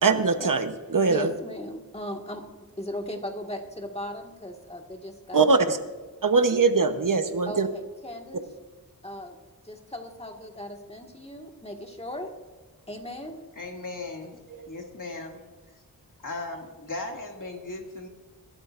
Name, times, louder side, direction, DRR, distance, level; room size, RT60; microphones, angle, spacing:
voice 1, 0.0-1.3 5.3-5.8 6.2-7.7 14.6-14.7, right 4 dB, 60° right, 8 dB, 1.0 m, -22 dB
voice 2, 1.1-2.4 2.8-5.8 7.5-8.4 9.0-9.4 9.6-12.3 12.9-13.4, left 1 dB, 15° left, 2 dB, 1.8 m, -37 dB
voice 3, 13.6-14.4 14.7-15.4 16.2-18.1, left 2 dB, 60° left, 1 dB, 2.3 m, -37 dB
24.5 x 12.5 x 2.6 m, 1.3 s
wide cardioid pair, 85°, 36 cm